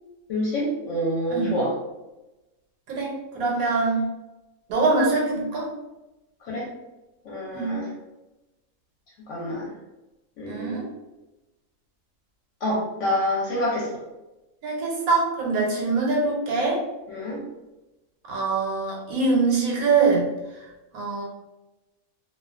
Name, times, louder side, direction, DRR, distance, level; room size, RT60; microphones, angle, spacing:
voice 1, 0.3-1.7 6.5-6.7 7.3-7.9 9.3-9.7 10.4-10.8 12.6-13.9 17.1-17.4, equal, 70° left, -4 dB, 0.9 m, -27 dB
voice 2, 2.9-4.0 4.7-5.7 7.5-7.8 10.4-10.8 14.6-16.8 18.3-20.3 20.9-21.2, right 3 dB, 90° right, -2 dB, 1.1 m, -23 dB
2.4 x 2.3 x 2.3 m, 1.0 s
omnidirectional pair, 1.5 m